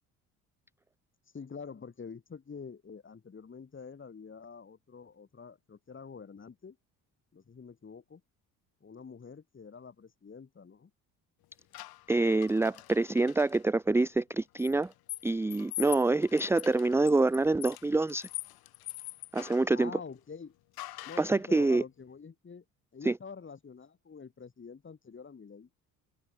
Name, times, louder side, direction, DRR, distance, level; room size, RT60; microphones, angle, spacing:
voice 1, 1.3-6.8 7.3-8.2 8.8-10.9 19.7-20.5 21.0-22.6 22.9-25.7, left 5 dB, 30° left, 7.6 m, -46 dB
sound 1, 11.7-13.6 14.6-19.7 20.8-21.4, left 16 dB, 75° left, 8.0 m, -43 dB
voice 2, 12.1-14.9 15.2-18.3 19.3-19.9 21.2-21.8 23.0-23.2, right 2 dB, 5° right, 0.6 m, -26 dB
supercardioid pair, 85°, 37 cm